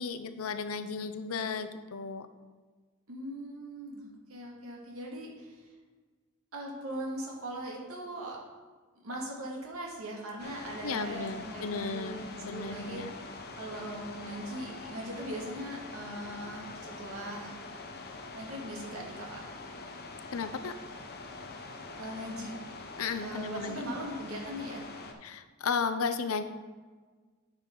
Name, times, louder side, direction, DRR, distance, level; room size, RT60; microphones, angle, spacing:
voice 1, 0.0-2.3 10.8-13.1 20.3-20.7 23.0-23.8 25.2-26.4, left 5 dB, 85° left, 10 dB, 0.6 m, -34 dB
voice 2, 3.1-5.6 6.5-8.4 9.0-13.0 13.5-17.5 18.3-19.5 22.0-22.5 23.2-24.8, right 1 dB, 85° right, -2 dB, 2.1 m, -40 dB
sound 1, 10.4-25.1, left 3 dB, 50° left, 0.9 m, -44 dB
9.6 x 6.4 x 3.9 m, 1.4 s
head